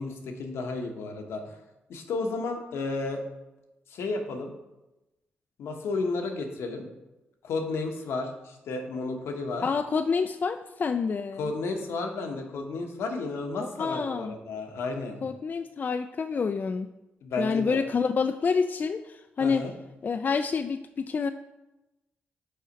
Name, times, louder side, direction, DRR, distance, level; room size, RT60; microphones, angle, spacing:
voice 1, 0.0-1.6 1.9-3.2 3.9-4.5 5.6-6.8 7.4-9.6 11.4-15.2 17.2-17.8 19.4-19.7, left 3 dB, 80° left, 4 dB, 1.0 m, -32 dB
voice 2, 9.6-11.5 13.6-14.3 15.2-16.9 17.4-19.7 20.0-21.3, left 5 dB, 45° left, 8 dB, 0.3 m, -28 dB
5.6 x 4.1 x 5.1 m, 0.98 s
cardioid pair, 60°, 4 cm